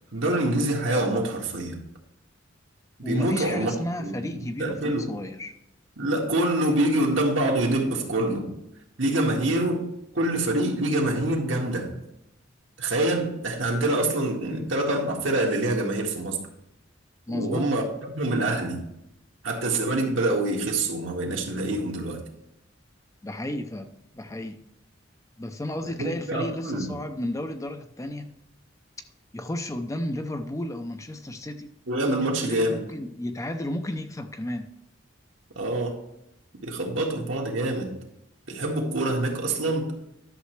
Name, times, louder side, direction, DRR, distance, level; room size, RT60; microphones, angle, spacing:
voice 1, 0.1-1.7 3.0-3.7 4.0-5.1 6.0-8.5 9.0-9.9 10.1-11.9 12.8-16.4 17.3-18.8 19.4-22.2 25.8-26.9 31.9-32.8 35.6-36.0 36.6-37.9 38.5-39.9, right 1 dB, 75° right, 0 dB, 1.9 m, -26 dB
voice 2, 3.0-5.5 17.3-17.7 23.2-24.6 25.4-28.3 29.3-31.7 32.5-34.7, left 1 dB, 15° left, 7 dB, 0.5 m, -33 dB
11.5 x 6.8 x 3.2 m, 0.84 s
head